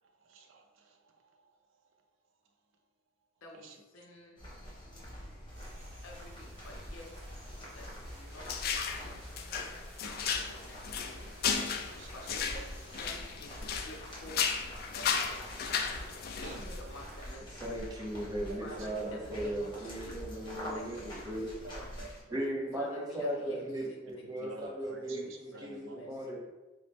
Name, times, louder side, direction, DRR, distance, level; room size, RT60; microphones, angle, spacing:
voice 1, 0.0-1.8 3.5-3.8 5.0-5.2 5.5-6.0 11.4-12.4 16.4-16.6 18.5-19.9 20.5-21.1 21.3-22.4 24.2-26.2, right 3 dB, 75° right, 4 dB, 0.5 m, -52 dB
voice 2, 3.4-4.4 6.0-7.2 7.5-9.5 10.0-10.9 12.1-16.0 16.4-17.8 18.5-20.4 20.7-22.1 22.7-23.6 23.9-24.5 24.8-24.9 25.2-26.1, left 1 dB, 85° left, -1 dB, 0.6 m, -51 dB
sound 1, 4.4-22.2, equal, 25° left, 1.1 m, -46 dB
sound 2, 5.5-17.3, right 2 dB, 55° right, 0.8 m, -57 dB
sound 3, 8.5-9.1 9.4-14.0 14.3-16.8, left 6 dB, 50° left, 0.3 m, -34 dB
voice 3, 17.6-21.5 22.3-26.5, right 1 dB, 20° right, -2 dB, 0.6 m, -37 dB
3.8 x 2.1 x 3.4 m, 1.1 s
head